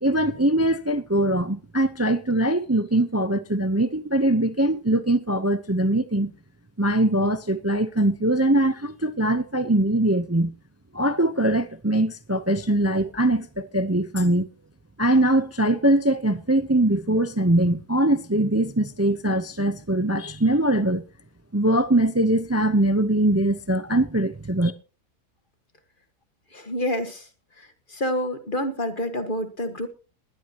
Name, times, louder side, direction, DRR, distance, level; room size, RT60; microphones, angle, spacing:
voice 1, 0.0-6.3 6.8-10.5 10.9-14.5 15.0-21.0 21.5-24.7, right 1 dB, 20° right, 0.4 m, -22 dB
voice 2, 26.5-27.2 27.9-29.9, left 1 dB, 35° left, 1.7 m, -27 dB
20.5 x 12.0 x 2.9 m
omnidirectional pair, 1.7 m